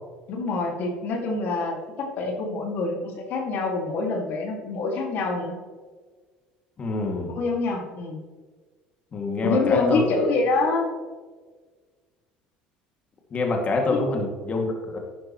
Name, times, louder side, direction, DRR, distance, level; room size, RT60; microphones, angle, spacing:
voice 1, 0.3-1.8 2.2-5.5 7.3-8.2 9.4-10.9 13.9-14.0, left 3 dB, 60° left, 1 dB, 2.2 m, -25 dB
voice 2, 6.8-7.4 9.1-10.0 13.3-15.0, left 3 dB, 40° left, 1 dB, 2.3 m, -26 dB
12.0 x 9.4 x 3.1 m, 1.4 s
supercardioid pair, 85°, 4 cm